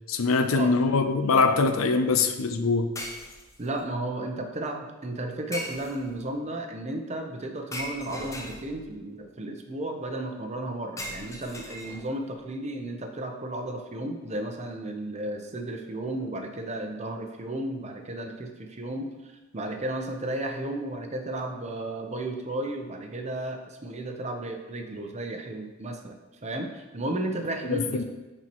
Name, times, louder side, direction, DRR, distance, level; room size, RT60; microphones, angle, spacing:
voice 1, 0.1-2.9 27.7-28.0, left 4 dB, 80° left, 8 dB, 0.5 m, -23 dB
sound 1, 1.0-1.1 3.0-3.8 5.5-6.3 7.7-9.0 11.0-12.3, left 1 dB, 15° left, 0.6 m, -39 dB
voice 2, 3.6-19.1 19.5-28.0, right 1 dB, 35° right, 4 dB, 0.7 m, -33 dB
9.4 x 4.4 x 3.0 m, 1.2 s
head